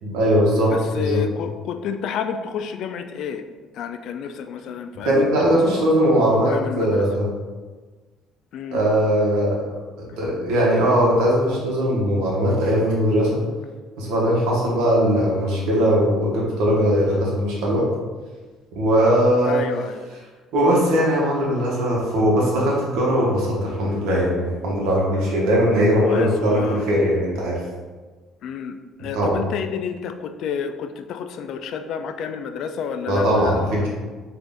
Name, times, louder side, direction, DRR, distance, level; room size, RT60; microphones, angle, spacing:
voice 1, 0.0-1.2 5.0-7.3 8.7-9.6 10.0-13.4 14.0-17.9 18.7-19.6 20.5-27.6 29.0-29.3 33.1-33.9, equal, 85° right, -4 dB, 1.0 m, -20 dB
voice 2, 0.7-3.4 3.7-5.9 6.4-7.1 8.5-8.8 19.4-20.1 25.8-26.9 28.4-33.9, left 7 dB, 70° left, 8 dB, 0.3 m, -30 dB
3.9 x 2.5 x 3.5 m, 1.3 s
cardioid pair, 100°, 0 cm